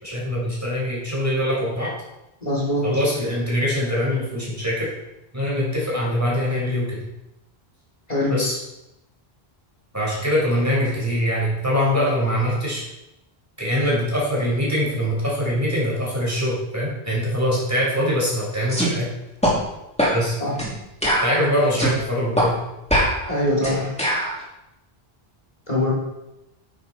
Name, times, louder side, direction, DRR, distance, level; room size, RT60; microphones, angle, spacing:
voice 1, 0.0-1.9 2.8-4.9 5.3-7.0 8.3-8.6 9.9-12.8 13.6-19.1 20.1-20.4 21.2-22.5, equal, 15° right, -6 dB, 4.8 m, -23 dB
voice 2, 2.4-2.9 8.1-8.3 20.4-20.5 23.3-24.0 25.7-25.9, left 1 dB, 40° left, -5 dB, 3.0 m, -22 dB
sound 1, 18.7-18.9 19.4-19.6 20.0-20.2 20.6-20.7 21.0-22.0 22.4-22.5 22.9-24.3, equal, 5° left, 3.0 m, -21 dB
10.0 x 9.8 x 4.3 m, 0.92 s
omnidirectional pair, 1.0 m